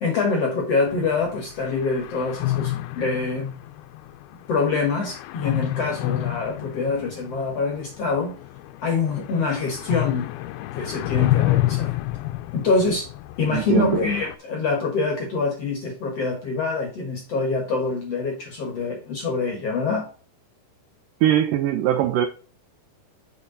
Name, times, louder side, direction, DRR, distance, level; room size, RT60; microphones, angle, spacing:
voice 1, 0.0-3.6 4.5-8.3 8.8-10.3 10.8-12.0 12.5-13.1 13.4-20.1, left 4 dB, 60° left, 1.8 m, -25 dB
sound 1, 0.9-14.4, left 16 dB, 85° left, 2.2 m, -29 dB
voice 2, 13.5-14.0 21.2-22.3, right 11 dB, 85° right, 1.9 m, -21 dB
6.5 x 5.7 x 3.9 m
omnidirectional pair, 4.7 m